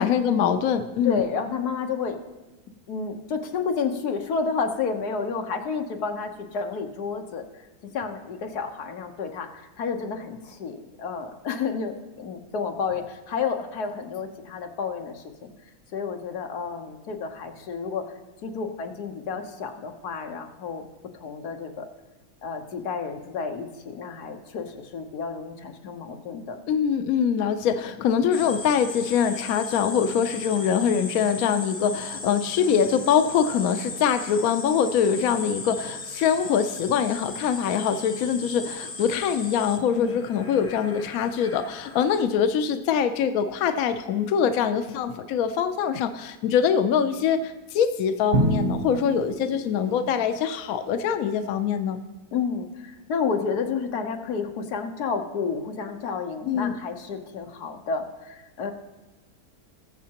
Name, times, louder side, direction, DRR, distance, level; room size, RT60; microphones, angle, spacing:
voice 1, 0.0-1.2 26.7-52.0 56.5-56.8, left 7 dB, 70° left, 9 dB, 1.0 m, -23 dB
voice 2, 1.0-2.2 2.9-7.4 7.8-9.5 9.8-15.5 15.9-18.1 18.4-20.8 21.1-21.9 22.4-26.6 39.9-40.2 52.3-58.7, left 5 dB, 90° left, 4 dB, 1.5 m, -30 dB
sound 1, 28.3-42.2, left 3 dB, 30° left, 0.8 m, -38 dB
Drum, 48.3-50.3, right 2 dB, 40° right, 0.7 m, -27 dB
20.0 x 7.4 x 2.9 m, 1.1 s
omnidirectional pair, 1.6 m